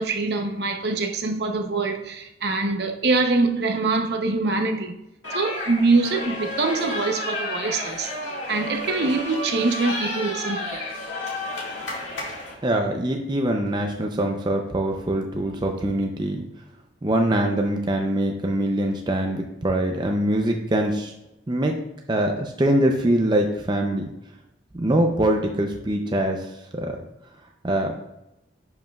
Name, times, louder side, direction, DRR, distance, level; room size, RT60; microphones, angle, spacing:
voice 1, 0.0-5.0 5.3-8.1 8.5-10.8, right 3 dB, 60° right, 0.8 m, -24 dB
sound 1, 5.2-12.5, left 1 dB, 85° left, 2.0 m, -31 dB
voice 2, 12.6-16.4 17.0-21.1 21.5-21.8 22.1-24.0 24.7-27.0 27.6-27.9, right 1 dB, 25° right, 0.5 m, -23 dB
10.5 x 5.2 x 2.3 m
head